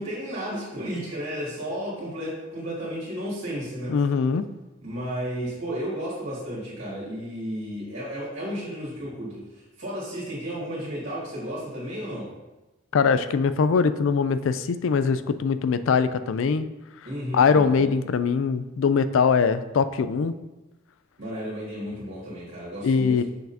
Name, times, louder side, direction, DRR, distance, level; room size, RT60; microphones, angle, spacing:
voice 1, 0.0-4.0 4.8-12.3 17.0-17.9 21.2-23.2, equal, 65° right, -8 dB, 2.2 m, -33 dB
voice 2, 3.9-4.4 12.9-16.7 17.3-20.3 22.8-23.2, left 5 dB, 75° left, 12 dB, 0.4 m, -22 dB
6.6 x 6.3 x 2.7 m, 1.1 s
head